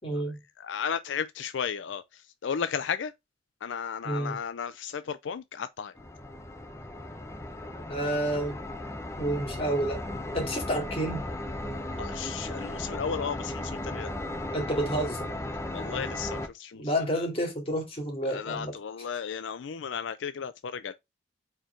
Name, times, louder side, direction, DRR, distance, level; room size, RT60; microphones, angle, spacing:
voice 1, 0.0-0.4 4.0-4.4 7.9-8.6 9.2-10.0 10.3-11.2 14.5-15.3 16.7-19.1, right 1 dB, 30° left, 2.5 m, -30 dB
voice 2, 0.6-3.1 3.6-5.9 12.0-14.1 15.7-16.8 17.1-17.3 18.3-20.9, left 7 dB, 75° left, 0.4 m, -34 dB
sound 1, 6.0-16.5, left 1 dB, 15° left, 0.7 m, -36 dB
4.5 x 4.4 x 5.0 m
head